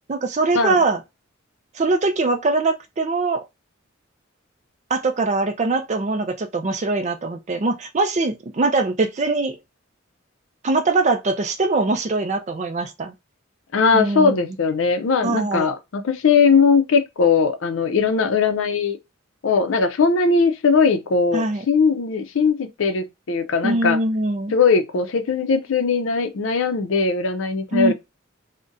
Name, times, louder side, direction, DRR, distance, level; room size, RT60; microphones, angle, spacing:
voice 1, 0.1-1.0 1.7-3.4 4.9-9.6 10.6-13.1 13.9-14.6 15.2-15.7 21.3-21.6 23.6-24.5 27.7-27.9, right 3 dB, 35° right, 0.4 m, -22 dB
voice 2, 13.7-19.0 19.4-24.0 24.5-27.9, left 5 dB, 70° left, 0.5 m, -19 dB
3.8 x 2.2 x 2.5 m
head